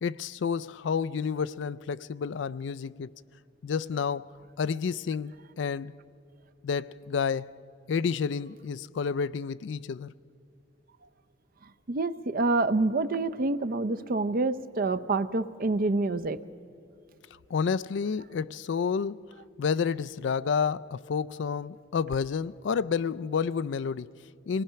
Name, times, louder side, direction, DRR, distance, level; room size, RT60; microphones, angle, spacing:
voice 1, 0.0-3.1 3.6-5.9 6.6-7.6 7.9-10.1 17.5-19.3 19.6-24.6, left 6 dB, 65° left, 0.4 m, -30 dB
voice 2, 11.9-16.4, right 3 dB, 50° right, 0.6 m, -27 dB
25.5 x 18.5 x 5.7 m
head